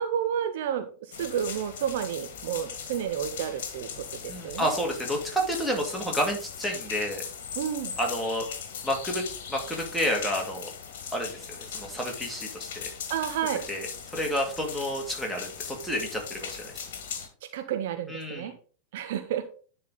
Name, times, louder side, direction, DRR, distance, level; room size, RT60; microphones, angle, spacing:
voice 1, 0.0-4.7 7.6-7.9 13.1-13.6 17.5-18.5 18.9-19.4, right 9 dB, 55° right, 9 dB, 0.6 m, -31 dB
sound 1, 1.1-17.3, left 7 dB, 55° left, 1.5 m, -39 dB
voice 2, 4.3-7.2 8.0-8.4 8.8-10.7 11.1-11.5 11.7-12.9 13.7-16.8 18.1-18.5, equal, ahead, 0 dB, 2.2 m, -30 dB
10.0 x 4.0 x 3.9 m, 0.41 s
figure-of-eight pair, 90°, 0 cm